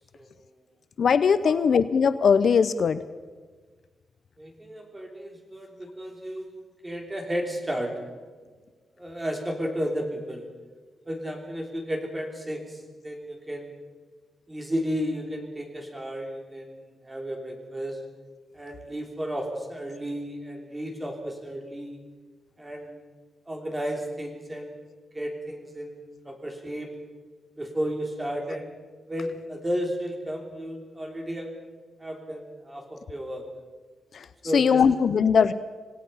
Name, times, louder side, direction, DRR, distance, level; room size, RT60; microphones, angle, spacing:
voice 1, 1.0-3.0 34.1-34.3 34.5-35.5, left 6 dB, 55° left, 13 dB, 0.6 m, -20 dB
voice 2, 4.4-6.5 6.8-8.0 9.0-10.5 11.1-13.8 14.5-18.0 18.5-22.0 22.6-23.0 23.5-24.9 25.1-26.9 27.6-28.8 29.1-31.5 32.0-33.4 34.4-34.8, equal, 15° right, 2 dB, 3.4 m, -33 dB
26.5 x 18.0 x 5.7 m, 1.4 s
wide cardioid pair, 145°, 0 cm